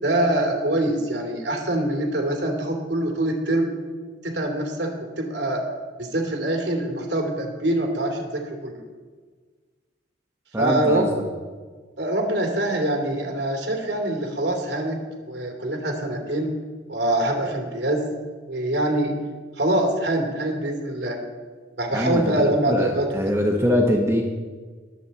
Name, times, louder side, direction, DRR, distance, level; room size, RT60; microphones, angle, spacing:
voice 1, 0.0-3.7 4.2-4.9 5.2-5.6 6.0-8.8 10.5-11.1 12.0-15.0 15.2-16.5 16.9-18.0 18.5-19.1 19.6-21.2 21.8-23.1, right 1 dB, 65° right, 1 dB, 2.7 m, -24 dB
voice 2, 10.5-11.1 21.9-24.2, equal, 15° right, 1 dB, 1.0 m, -23 dB
21.5 x 7.8 x 4.2 m, 1.5 s
head